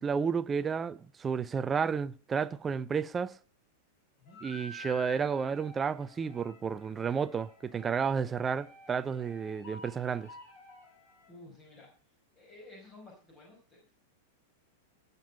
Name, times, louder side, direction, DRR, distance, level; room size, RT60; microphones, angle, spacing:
voice 1, 0.0-3.4 4.4-10.3, right 6 dB, 20° right, 0.5 m, -32 dB
sound 1, 4.3-11.3, left 1 dB, 40° left, 7.9 m, -50 dB
voice 2, 11.3-14.0, left 2 dB, 25° left, 4.9 m, -54 dB
18.0 x 6.8 x 5.5 m
figure-of-eight pair, 95°, 0 cm